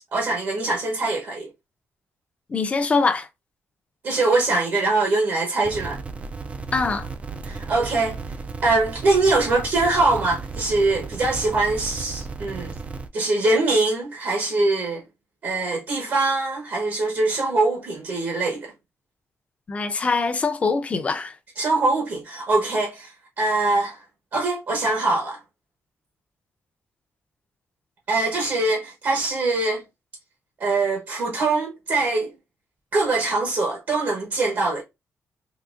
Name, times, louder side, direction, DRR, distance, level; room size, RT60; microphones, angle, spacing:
voice 1, 0.1-1.5 4.0-6.0 7.4-8.2 8.6-12.7 13.1-15.0 15.4-18.7 21.6-24.0 24.3-25.4 28.1-29.8 30.6-32.3 32.9-34.8, right 2 dB, 55° right, 1.0 m, -23 dB
voice 2, 2.5-3.3 6.7-7.1 19.7-21.3, left 4 dB, 25° left, 0.5 m, -23 dB
sound 1, 5.6-13.1, right 4 dB, 25° right, 0.3 m, -34 dB
3.9 x 2.7 x 2.4 m
wide cardioid pair, 165°, 5 cm